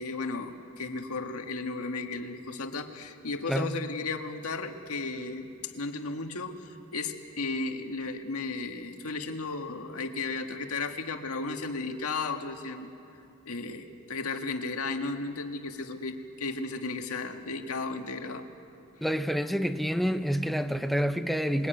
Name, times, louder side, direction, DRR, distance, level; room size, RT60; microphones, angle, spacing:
voice 1, 0.0-12.9 13.4-18.4, left 3 dB, 80° left, 1.8 m, -34 dB
voice 2, 19.0-21.7, equal, ahead, 0.8 m, -28 dB
27.0 x 22.0 x 9.2 m
head